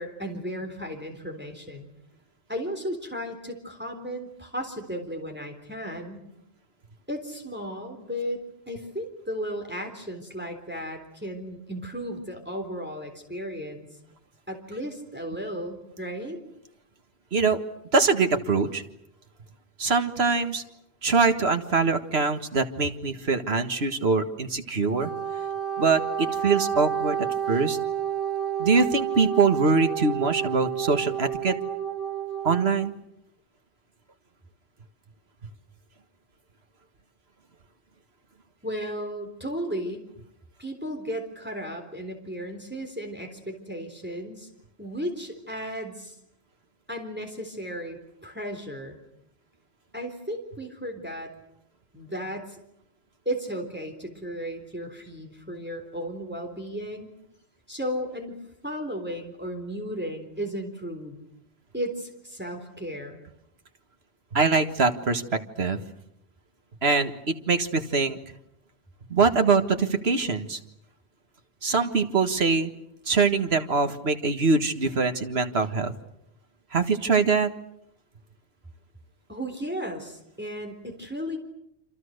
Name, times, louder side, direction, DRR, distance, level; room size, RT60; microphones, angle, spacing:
voice 1, 0.0-1.9 2.5-6.3 7.1-13.9 14.5-16.4 38.6-40.0 40.6-44.5 44.8-46.2 46.9-49.0 49.9-51.3 51.9-52.6 53.3-57.1 57.7-61.2 61.7-63.2 79.3-81.4, equal, 10° right, 3 dB, 3.7 m, -35 dB
voice 2, 17.9-18.8 19.8-20.6 21.0-25.1 25.8-27.8 28.6-31.6 32.4-32.9 64.3-65.8 66.8-68.2 69.1-70.6 71.6-72.7 73.1-75.9 76.7-77.5, right 4 dB, 70° right, 7 dB, 1.9 m, -23 dB
Wind instrument woodwind instrument, 24.8-32.9, right 9 dB, 55° left, 2.9 m, -30 dB
29.0 x 26.5 x 6.6 m, 0.78 s
omnidirectional pair, 1.1 m